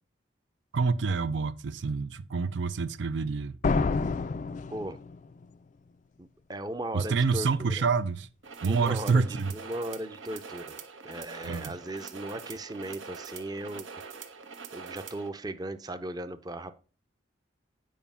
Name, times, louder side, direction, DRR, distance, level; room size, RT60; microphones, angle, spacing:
voice 1, 0.7-3.5 6.9-8.3 8.6-9.5 11.4-11.7, right 4 dB, 70° right, 0.5 m, -27 dB
sound 1, 3.6-5.4, left 4 dB, 40° left, 0.4 m, -28 dB
voice 2, 6.2-7.8 8.7-9.2 9.5-10.8 11.0-13.9 14.1-14.3 14.7-16.7, right 1 dB, 20° right, 0.6 m, -37 dB
sound 2, 8.4-15.3, right 5 dB, 90° right, 1.3 m, -44 dB
9.3 x 5.0 x 5.5 m
head